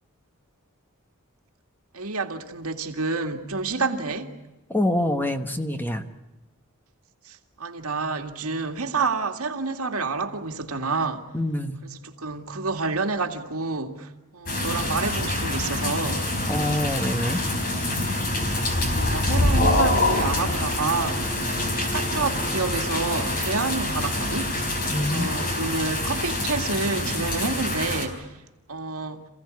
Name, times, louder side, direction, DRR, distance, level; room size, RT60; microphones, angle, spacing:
voice 1, 1.9-4.3 7.3-11.3 12.2-16.3 18.7-28.3 28.7-29.3, right 4 dB, 80° right, 2.1 m, -29 dB
voice 2, 4.7-6.1 11.3-11.8 16.5-17.4 24.9-25.4, left 1 dB, 10° left, 1.2 m, -26 dB
sound 1, 14.5-28.1, left 1 dB, 40° left, 4.4 m, -25 dB
27.5 x 16.0 x 9.6 m
head